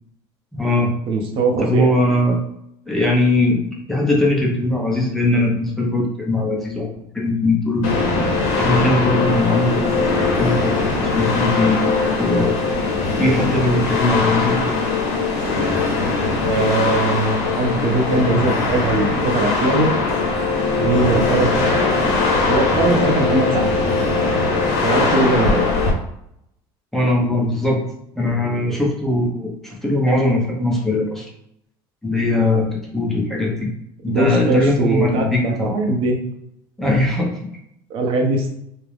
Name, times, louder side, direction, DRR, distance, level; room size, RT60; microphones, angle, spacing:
voice 1, 0.5-0.9 1.6-2.4 2.9-3.6 3.9-8.0 8.6-12.6 13.2-14.8 26.9-27.8 28.2-31.3 32.0-32.7 32.9-33.7 34.0-35.8 36.8-37.3, left 2 dB, 5° left, -3 dB, 0.6 m, -20 dB
voice 2, 1.1-1.9 16.5-19.9 20.8-21.5 22.5-23.7 24.8-25.6 34.1-36.3 37.9-38.5, right 2 dB, 55° right, 2 dB, 0.5 m, -20 dB
sound 1, 7.8-25.9, left 3 dB, 80° left, 0.7 m, -20 dB
2.4 x 2.0 x 3.2 m, 0.77 s
supercardioid pair, 120°, 11 cm